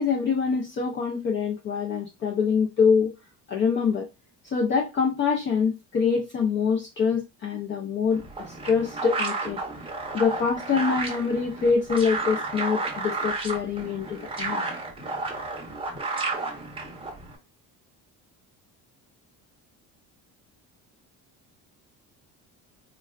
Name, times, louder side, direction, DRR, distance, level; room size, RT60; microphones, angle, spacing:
voice 1, 0.0-3.1 3.5-4.1 4.4-9.6 10.1-14.7, left 5 dB, 35° left, 0.4 m, -25 dB
sound 1, 8.1-17.4, right 3 dB, 15° right, 0.6 m, -32 dB
3.4 x 2.2 x 2.2 m
cardioid pair, 150°, 35 cm